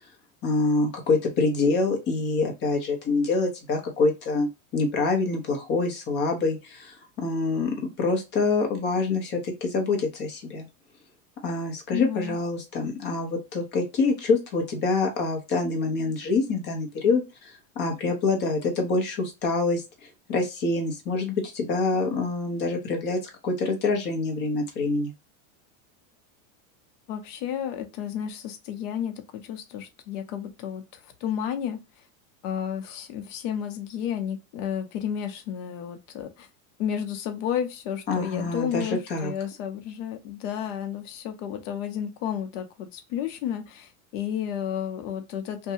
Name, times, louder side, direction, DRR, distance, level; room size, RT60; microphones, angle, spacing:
voice 1, 0.4-10.7 11.4-19.8 20.3-25.1 38.1-39.3, left 3 dB, 25° left, 0.7 m, -26 dB
voice 2, 11.9-12.4 27.1-31.8 32.4-36.5 36.8-45.7, left 9 dB, 60° left, 0.7 m, -32 dB
2.6 x 2.2 x 2.7 m
supercardioid pair, 155°, 42 cm